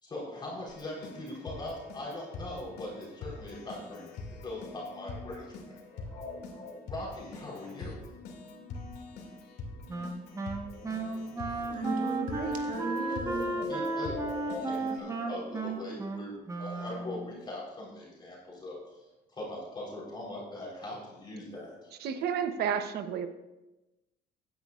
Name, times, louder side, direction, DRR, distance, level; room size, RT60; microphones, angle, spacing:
voice 1, 0.0-5.8 6.9-8.0 13.1-13.2 13.7-18.8 19.3-21.9, left 1 dB, 25° left, -4 dB, 3.9 m, -41 dB
Keyboard (musical), 0.7-15.0, left 3 dB, 75° left, 2.4 m, -45 dB
sound 1, 5.9-10.0 10.3-14.9, left 1 dB, 10° left, 3.6 m, -43 dB
Wind instrument woodwind instrument, 9.9-17.3, right 3 dB, 20° right, 1.2 m, -34 dB
voice 2, 11.0-13.6, right 3 dB, 50° right, 0 dB, 2.4 m, -37 dB
voice 3, 22.0-23.3, right 8 dB, 70° right, 9 dB, 0.9 m, -31 dB
15.5 x 9.7 x 2.5 m, 1.0 s
cardioid pair, 110°, 17 cm